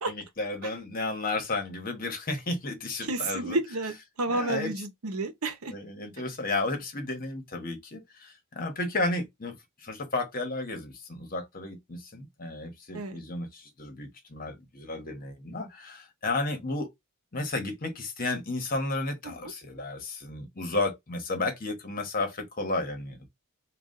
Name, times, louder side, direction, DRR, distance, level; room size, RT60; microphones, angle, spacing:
voice 1, 0.1-3.6 4.3-4.7 5.7-9.6 9.8-16.9 17.3-23.3, left 2 dB, 40° left, 1.1 m, -33 dB
voice 2, 3.0-5.7 12.9-13.2 19.2-19.5, right 2 dB, 70° right, 0.8 m, -31 dB
3.9 x 2.4 x 3.7 m
head